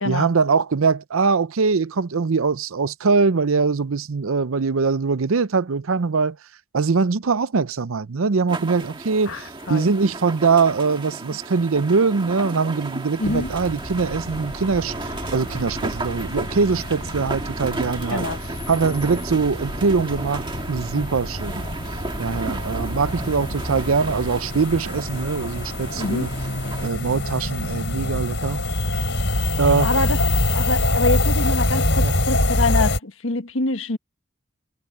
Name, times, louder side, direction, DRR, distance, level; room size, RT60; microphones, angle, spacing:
voice 1, 0.1-6.4 6.7-14.9 15.3-18.3 18.7-21.7 22.2-26.3 26.8-28.6 29.6-29.9 32.0-32.2, right 4 dB, 80° right, 0.6 m, -22 dB
sound 1, 8.5-26.9, right 2 dB, 25° right, 1.7 m, -34 dB
voice 2, 9.3-9.9 13.2-13.5 18.1-18.4 26.0-26.3 29.8-30.2 30.5-34.0, left 2 dB, 75° left, 1.5 m, -25 dB
sound 2, 13.2-33.0, left 1 dB, 55° left, 5.4 m, -26 dB
head